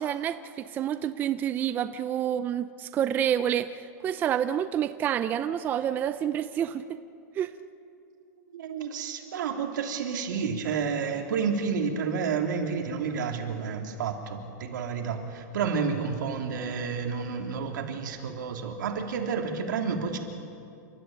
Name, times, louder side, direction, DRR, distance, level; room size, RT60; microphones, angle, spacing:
voice 1, 0.0-7.0 7.4-7.5, right 10 dB, 20° right, 11 dB, 0.5 m, -28 dB
voice 2, 8.5-20.2, right 5 dB, 80° right, 3 dB, 3.0 m, -30 dB
29.0 x 13.5 x 8.9 m, 2.5 s
supercardioid pair, 165°, 10 cm